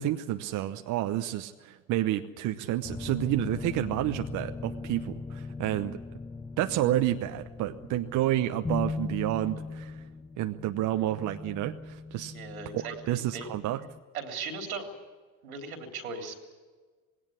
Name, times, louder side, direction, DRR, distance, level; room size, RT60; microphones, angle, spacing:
voice 1, 0.0-6.0 6.6-10.0 10.4-12.3 12.7-13.8, right 13 dB, 45° right, 8 dB, 0.9 m, -30 dB
sound 1, 2.8-14.0, left 3 dB, 10° left, 0.6 m, -39 dB
voice 2, 12.3-13.5 14.1-14.9 15.4-16.3, right 4 dB, 85° right, 4 dB, 3.4 m, -38 dB
19.0 x 17.5 x 9.8 m, 1.4 s
hypercardioid pair, 75°, 42 cm